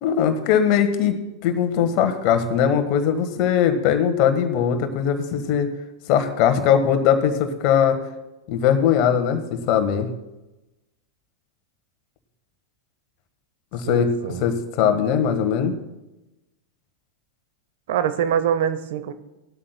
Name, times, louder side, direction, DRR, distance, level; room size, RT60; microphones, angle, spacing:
voice 1, 0.0-5.7 6.1-8.0 8.5-10.1 13.7-14.1 14.4-15.8, left 8 dB, 45° left, 7 dB, 1.5 m, -20 dB
voice 2, 13.9-14.4 17.9-19.1, right 9 dB, 55° right, 12 dB, 0.9 m, -24 dB
19.0 x 13.0 x 2.3 m, 1.0 s
figure-of-eight pair, 90°, 0 cm